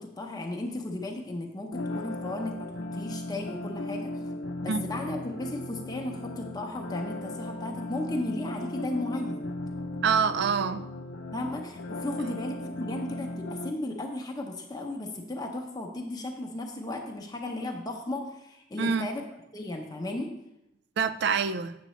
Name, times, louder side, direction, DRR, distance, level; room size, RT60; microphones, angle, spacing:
voice 1, 0.0-4.1 4.6-9.5 11.3-19.2 19.5-20.3, left 1 dB, 20° left, 0.7 m, -35 dB
sound 1, 1.7-13.7, left 1 dB, 85° left, 0.6 m, -37 dB
voice 2, 10.0-10.9 18.8-19.1 21.0-21.8, right 5 dB, 60° right, 0.4 m, -26 dB
7.9 x 6.6 x 3.1 m
head